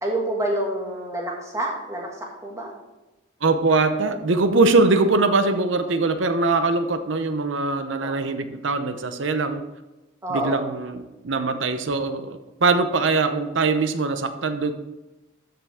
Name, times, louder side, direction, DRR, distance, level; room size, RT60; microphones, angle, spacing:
voice 1, 0.0-2.7 8.0-8.2 10.2-10.7, right 1 dB, 15° right, -1 dB, 1.9 m, -28 dB
voice 2, 3.4-9.6 10.3-14.7, right 3 dB, 70° right, 9 dB, 0.7 m, -22 dB
13.0 x 5.8 x 3.6 m, 1.1 s
head